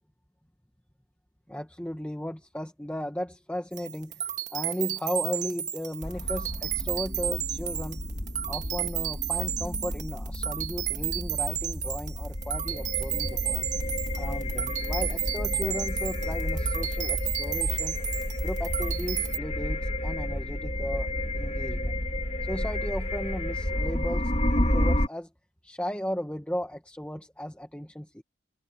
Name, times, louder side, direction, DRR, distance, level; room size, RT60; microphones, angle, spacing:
voice 1, 1.5-4.2 4.5-8.0 8.5-13.7 14.1-18.0 18.4-21.1 21.3-22.0 22.5-25.3 25.6-28.2, equal, 5° left, 1.6 m, -35 dB
sound 1, 3.7-19.4, right 12 dB, 40° right, 2.1 m, -33 dB
sound 2, 6.0-25.1, left 1 dB, 35° left, 2.3 m, -31 dB
head